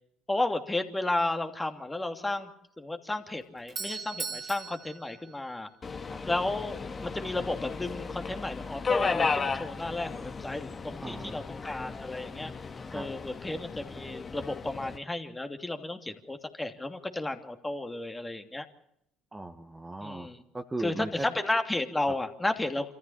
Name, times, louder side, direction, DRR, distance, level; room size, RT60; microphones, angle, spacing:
voice 1, 0.3-2.5 2.8-5.7 6.3-12.5 12.9-18.6 20.0-20.4 20.8-22.9, left 2 dB, 15° left, 6 dB, 2.8 m, -33 dB
Doorbell, 3.3-6.2, right 5 dB, 40° right, 2.6 m, -40 dB
Subway metro underground, 5.8-15.0, left 4 dB, 35° left, 2.2 m, -35 dB
voice 2, 11.0-11.5 12.9-13.0 19.3-21.3, right 2 dB, 15° right, 6 dB, 1.9 m, -38 dB
26.0 x 14.5 x 8.8 m, 0.78 s
hypercardioid pair, 65°, 0 cm